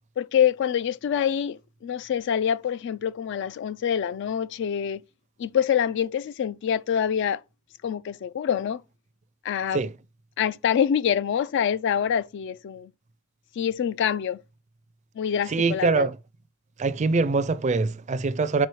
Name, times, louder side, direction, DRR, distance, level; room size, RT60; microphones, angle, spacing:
voice 1, 0.2-5.0 5.4-7.4 7.8-8.8 9.4-9.8 10.4-12.9 13.6-14.4 15.2-16.1, left 8 dB, 60° left, 0.3 m, -25 dB
voice 2, 15.5-16.2 16.8-18.7, right 4 dB, 35° right, 0.4 m, -23 dB
4.8 x 4.7 x 4.5 m
head